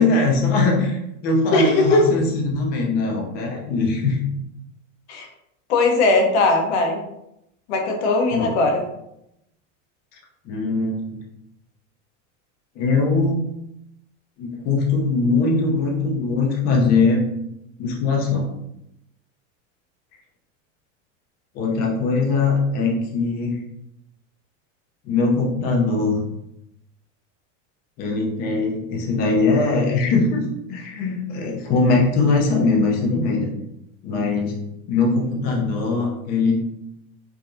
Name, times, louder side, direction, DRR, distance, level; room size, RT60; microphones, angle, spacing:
voice 1, 0.0-4.2 8.3-8.5 10.4-11.2 12.8-13.4 14.4-17.2 17.8-18.5 21.5-23.6 25.0-26.2 28.0-30.4 30.7-33.5 34.0-34.5 34.9-36.5, left 3 dB, 25° left, 0 dB, 0.5 m, -21 dB
voice 2, 1.5-2.1 5.1-5.3 5.7-7.0 7.7-8.8, left 2 dB, 55° left, 2 dB, 0.9 m, -19 dB
4.7 x 2.7 x 2.5 m, 0.82 s
supercardioid pair, 175°, 39 cm